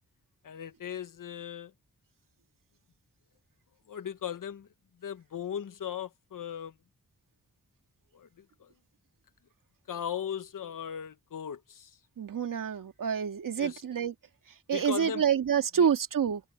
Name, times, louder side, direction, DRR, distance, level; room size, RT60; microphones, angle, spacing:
voice 1, 0.4-1.7 3.9-4.7 5.0-6.8 8.1-8.7 9.9-12.0 13.6-13.8 14.7-15.2 15.8-15.9, left 8 dB, 80° left, 1.4 m, -38 dB
voice 2, 12.2-14.1 14.7-16.4, right 7 dB, 80° right, 2.2 m, -27 dB
wide cardioid pair, 110°, 32 cm